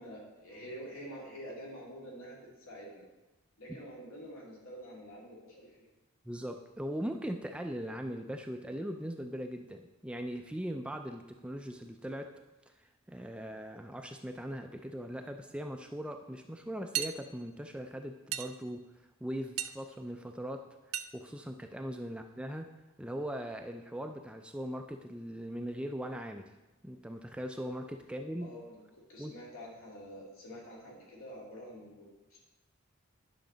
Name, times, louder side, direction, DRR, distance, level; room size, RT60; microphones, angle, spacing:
voice 1, 0.0-3.1 3.6-5.9 28.4-32.4, equal, 80° left, -4 dB, 2.7 m, -47 dB
voice 2, 6.2-12.3 12.7-18.8 19.2-20.7 21.1-22.7 23.0-26.5 26.8-28.6 29.2-29.3, equal, 5° right, 5 dB, 0.3 m, -40 dB
sound 1, 16.9-17.1 18.3-18.5 19.6-19.8 20.9-21.1, right 11 dB, 85° right, 0.4 m, -34 dB
10.5 x 5.9 x 3.9 m, 1.1 s
head